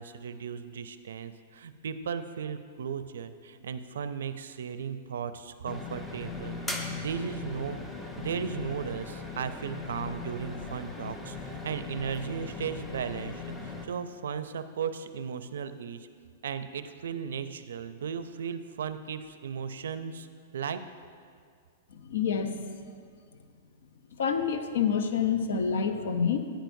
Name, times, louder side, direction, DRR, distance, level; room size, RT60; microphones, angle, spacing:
voice 1, 0.0-7.8 8.2-16.1 16.4-20.3 20.5-20.8, right 7 dB, 90° right, 11 dB, 0.4 m, -36 dB
sound 1, 5.7-13.9, left 3 dB, 10° left, 0.6 m, -39 dB
voice 2, 21.9-22.7 24.2-26.5, left 6 dB, 75° left, 7 dB, 0.6 m, -28 dB
9.1 x 9.0 x 2.7 m, 2.2 s
hypercardioid pair, 150°, 0 cm